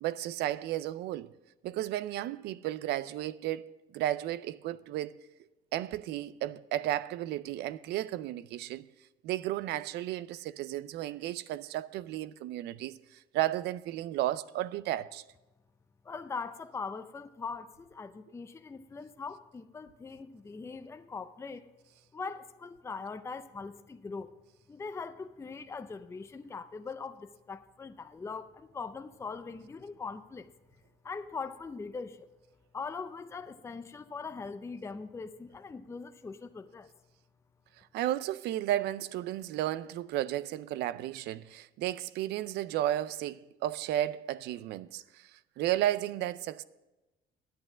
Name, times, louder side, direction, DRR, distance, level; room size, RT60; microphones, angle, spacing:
voice 1, 0.0-1.3 1.6-3.6 3.9-5.2 5.7-8.8 9.2-15.2 37.8-46.6, right 13 dB, 80° right, 0.5 m, -33 dB
voice 2, 16.0-21.7 22.1-24.3 24.7-30.5 31.0-32.3 32.7-36.9, left 4 dB, 15° left, 0.5 m, -41 dB
11.0 x 8.6 x 6.1 m
cardioid pair, 110°, 17 cm